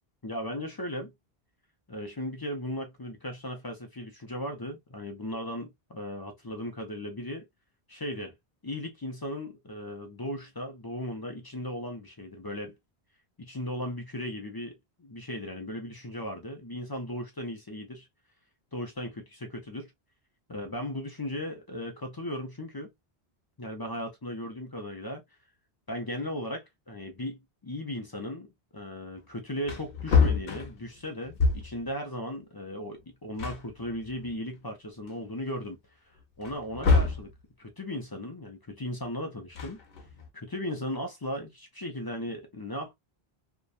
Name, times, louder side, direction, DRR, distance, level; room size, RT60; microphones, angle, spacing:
voice 1, 0.2-1.1 1.9-7.5 7.9-8.3 8.6-12.8 13.4-18.1 18.7-19.9 20.5-22.9 23.6-25.2 25.9-35.8 36.4-37.3 37.6-39.8 40.3-42.9, left 1 dB, 30° left, 0.4 m, -37 dB
Wood, 29.2-29.3 29.6-31.9 33.0-33.1 33.4-34.6 35.1-35.2 36.4-37.3 39.4-40.3, left 4 dB, 65° left, 0.9 m, -27 dB
2.7 x 2.2 x 2.3 m
omnidirectional pair, 1.0 m